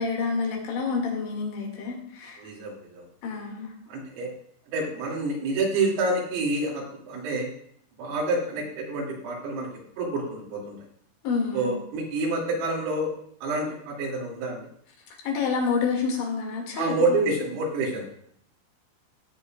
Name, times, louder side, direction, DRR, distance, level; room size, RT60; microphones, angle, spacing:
voice 1, 0.0-2.4 3.2-3.7 11.2-11.8 15.2-17.2, left 5 dB, 70° left, 0 dB, 4.3 m, -28 dB
voice 2, 2.4-3.0 3.9-4.3 4.7-7.5 8.0-9.7 10.0-10.8 11.5-13.1 13.4-14.7 16.8-18.1, right 2 dB, 80° right, -3 dB, 5.3 m, -28 dB
18.0 x 8.4 x 2.5 m, 0.67 s
omnidirectional pair, 5.9 m